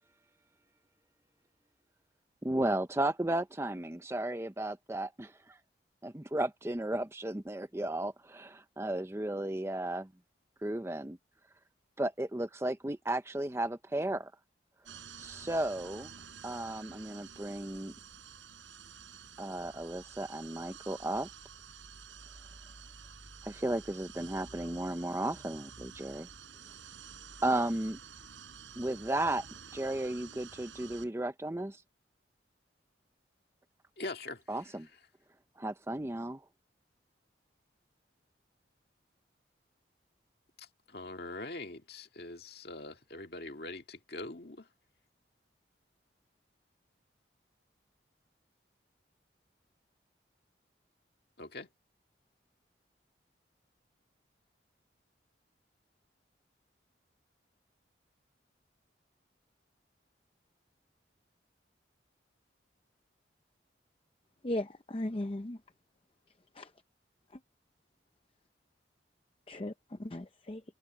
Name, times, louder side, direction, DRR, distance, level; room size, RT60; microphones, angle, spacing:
voice 1, 2.4-5.6 6.0-10.1 10.6-11.2 12.0-14.3 14.9-18.0 19.4-21.3 23.4-26.3 27.4-28.0 28.8-31.8 34.5-34.9 35.6-36.5, right 1 dB, 15° right, 0.6 m, -34 dB
sound 1, 14.9-31.1, right 6 dB, 90° right, 7.4 m, -50 dB
voice 2, 34.0-34.4 40.6-44.7 51.4-51.7, left 2 dB, 55° left, 2.1 m, -43 dB
voice 3, 64.4-65.6 66.5-66.7 67.3-67.4 69.5-70.6, left 1 dB, 30° left, 0.6 m, -37 dB
head